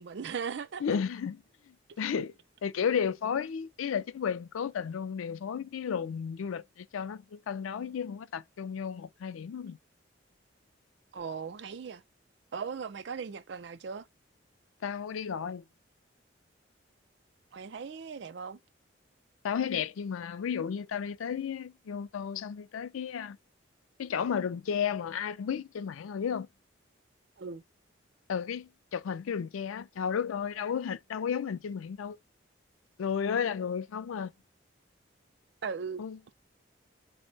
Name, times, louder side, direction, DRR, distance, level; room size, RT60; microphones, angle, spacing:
voice 1, 0.0-0.8 11.1-12.0 12.5-14.1 17.5-18.6 27.4-27.6 35.6-36.0, right 6 dB, 60° right, 0.4 m, -38 dB
voice 2, 0.8-1.4 1.7-9.8 14.8-15.7 19.4-23.4 24.0-26.5 28.3-32.2 33.0-34.3 36.0-36.2, left 7 dB, 90° left, 0.4 m, -33 dB
4.3 x 2.1 x 3.8 m
head